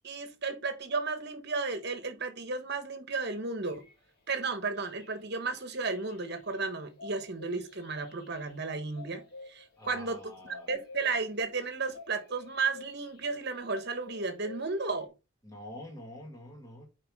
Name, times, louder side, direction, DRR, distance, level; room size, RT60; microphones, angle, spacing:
voice 1, 0.0-3.8 4.3-10.3 10.7-15.1, right 4 dB, 50° right, 1.3 m, -33 dB
sound 1, 3.7-15.1, left 3 dB, 50° left, 2.1 m, -52 dB
voice 2, 9.8-10.8 15.4-16.9, left 1 dB, 15° left, 1.8 m, -46 dB
7.9 x 4.9 x 3.6 m
head